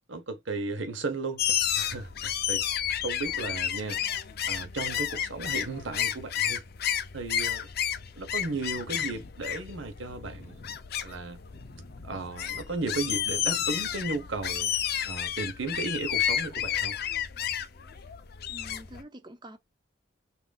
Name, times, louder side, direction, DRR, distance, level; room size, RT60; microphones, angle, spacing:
voice 1, 0.1-1.4 1.7-2.7 3.0-4.0 4.4-6.6 7.1-7.7 8.2-10.6 11.0-11.4 12.0-14.7 15.0-17.0, right 3 dB, 85° right, 1.0 m, -35 dB
sound 1, 1.4-19.0, left 10 dB, 55° left, 0.6 m, -31 dB
sound 2, 8.7-14.5, left 2 dB, 75° left, 0.9 m, -53 dB
voice 2, 18.5-19.6, equal, 25° right, 0.6 m, -46 dB
5.7 x 2.6 x 2.4 m
head